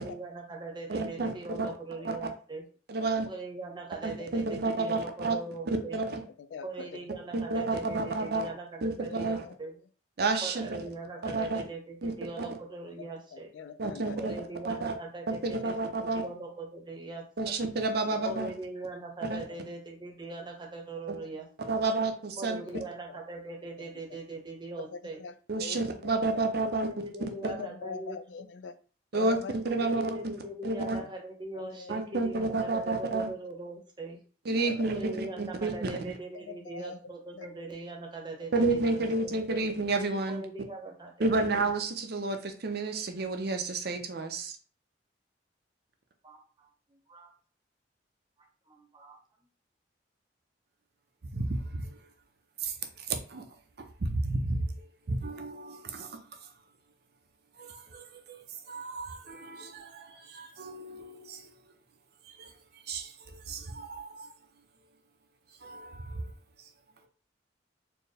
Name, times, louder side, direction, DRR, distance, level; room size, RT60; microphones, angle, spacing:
voice 1, 0.0-2.6 3.3-6.0 6.6-9.7 10.4-13.5 14.2-17.5 18.2-21.7 22.4-25.2 26.6-28.2 29.7-34.2 34.9-39.6 40.3-41.4 46.2-46.7 47.1-47.3 48.7-49.2, right 2 dB, 25° right, 1 dB, 0.9 m, -41 dB
voice 2, 0.9-1.7 2.0-2.3 2.9-3.3 4.0-5.4 5.7-6.2 7.3-8.5 8.8-9.4 10.2-10.9 11.2-11.6 12.0-12.5 13.8-14.9 15.3-16.3 17.4-18.5 19.2-19.4 21.1-21.2 21.6-22.6 25.5-26.9 27.4-27.5 29.1-30.3 30.6-31.0 31.9-33.3 34.5-36.0 38.5-40.5 41.2-44.6 51.3-52.0 52.6-53.5 53.8-54.7 55.1-56.2 57.6-61.5 62.3-62.5 62.9-64.3 65.6-66.3, right 3 dB, 60° right, 6 dB, 0.6 m, -31 dB
voice 3, 1.7-2.1 3.0-3.2 6.4-7.1 9.1-9.6 12.9-14.4 15.8-15.9 18.0-18.2 19.5-19.6 22.6-23.2 24.8-26.5 27.4-28.8 29.1-29.6 30.0-30.1 31.0-31.1 31.5-31.9 33.2-33.3 34.5-34.9 36.3-37.0 37.3-37.5 39.5-39.6, left 5 dB, 80° left, 12 dB, 0.3 m, -43 dB
4.3 x 2.1 x 3.3 m, 0.40 s
head